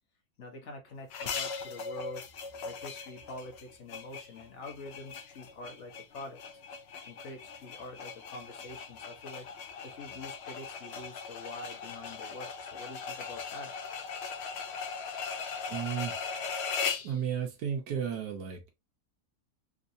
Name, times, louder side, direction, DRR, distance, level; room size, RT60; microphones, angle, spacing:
voice 1, 0.4-6.4 7.0-9.5 9.8-13.7, left 2 dB, 50° left, 1.2 m, -46 dB
sound 1, 1.1-17.2, left 5 dB, 80° left, 0.5 m, -39 dB
voice 2, 15.7-16.2 17.0-18.7, right 8 dB, 85° right, 1.4 m, -33 dB
3.7 x 2.6 x 2.6 m
omnidirectional pair, 1.7 m